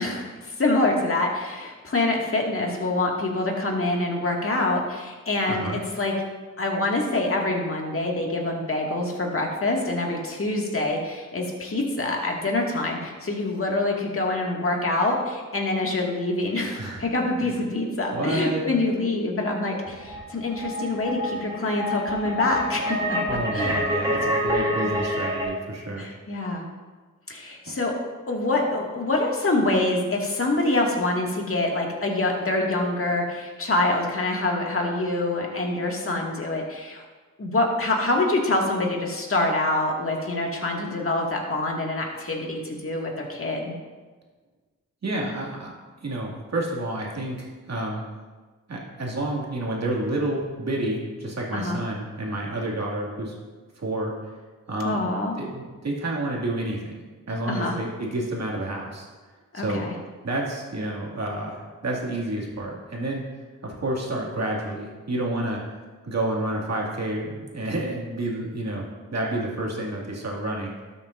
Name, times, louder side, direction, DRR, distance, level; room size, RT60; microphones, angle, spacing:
voice 1, 0.0-6.1 6.6-23.2 23.5-23.7 26.0-26.6 27.3-27.9 28.3-37.0 37.4-43.7 51.5-51.8 54.8-55.4 57.5-57.8 59.5-59.9, left 2 dB, 40° left, -1 dB, 2.1 m, -25 dB
voice 2, 5.5-5.8 16.8-17.1 17.4-17.5 18.1-18.6 23.3-26.0 27.7-27.8 45.0-45.7 46.0-48.1 48.7-53.3 53.8-54.1 54.7-59.1 59.5-59.8 60.2-63.2 63.6-65.6 66.0-68.8 69.1-70.7, right 1 dB, 50° right, -2 dB, 2.3 m, -29 dB
sound 1, 19.9-25.5, equal, 15° right, 2.6 m, -27 dB
13.0 x 7.1 x 2.6 m, 1.4 s
cardioid pair, 55°, 33 cm